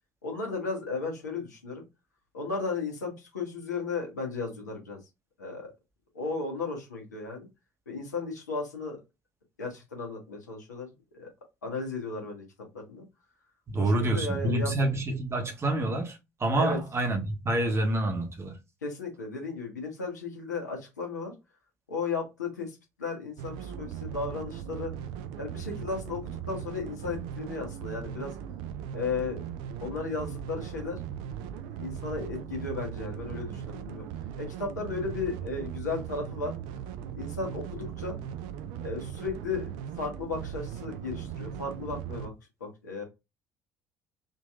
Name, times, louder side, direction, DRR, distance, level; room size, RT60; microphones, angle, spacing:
voice 1, 0.2-1.8 2.3-5.0 5.4-5.7 6.1-7.5 7.9-9.0 9.6-10.9 11.1-11.3 11.6-12.4 12.7-13.0 13.8-14.8 16.6-16.8 18.8-21.3 21.9-24.9 25.4-26.2 26.5-28.3 28.9-29.4 29.8-31.0 31.8-34.1 34.4-36.5 37.1-38.2 38.8-42.3 42.6-43.0, left 4 dB, 80° left, 1.2 m, -35 dB
voice 2, 13.7-18.6, right 1 dB, 30° right, 0.9 m, -27 dB
sound 1, 23.4-42.3, right 9 dB, 60° right, 0.4 m, -38 dB
3.7 x 2.8 x 2.4 m
figure-of-eight pair, 55°, 9 cm